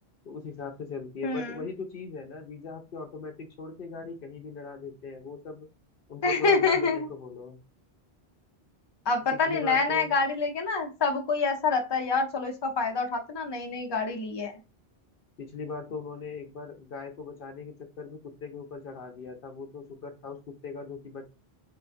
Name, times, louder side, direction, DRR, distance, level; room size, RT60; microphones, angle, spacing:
voice 1, 0.3-5.7 6.1-7.6 9.3-10.2 15.4-21.3, left 4 dB, 60° left, 4 dB, 0.8 m, -39 dB
voice 2, 1.2-1.6 6.2-7.1 9.1-14.5, left 4 dB, 30° left, 2 dB, 0.7 m, -26 dB
4.6 x 3.8 x 2.5 m, 0.29 s
omnidirectional pair, 1.1 m